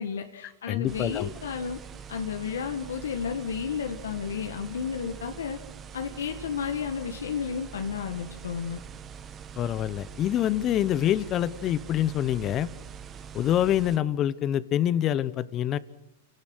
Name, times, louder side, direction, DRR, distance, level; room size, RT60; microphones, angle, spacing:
voice 1, 0.0-1.8 2.1-5.6 5.9-8.8, left 6 dB, 90° left, 5 dB, 1.6 m, -32 dB
voice 2, 0.7-1.3 9.6-12.7 13.3-15.8, left 11 dB, 30° left, 17 dB, 0.9 m, -26 dB
sound 1, 0.9-14.0, right 7 dB, 25° right, 1.3 m, -44 dB
28.5 x 17.5 x 6.3 m, 0.84 s
hypercardioid pair, 135°, 0 cm